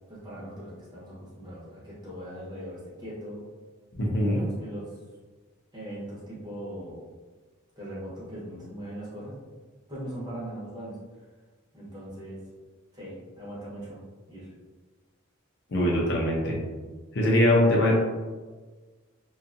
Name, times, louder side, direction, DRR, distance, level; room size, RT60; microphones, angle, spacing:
voice 1, 0.1-3.4 4.2-5.0 5.7-7.0 7.8-9.3 9.9-11.0 11.7-12.4 12.9-14.0 14.3-14.5, right 1 dB, 20° right, -8 dB, 0.9 m, -40 dB
voice 2, 4.0-4.4 15.7-16.6 17.1-18.0, left 1 dB, 55° left, -2 dB, 0.5 m, -22 dB
2.6 x 2.3 x 2.5 m, 1.4 s
head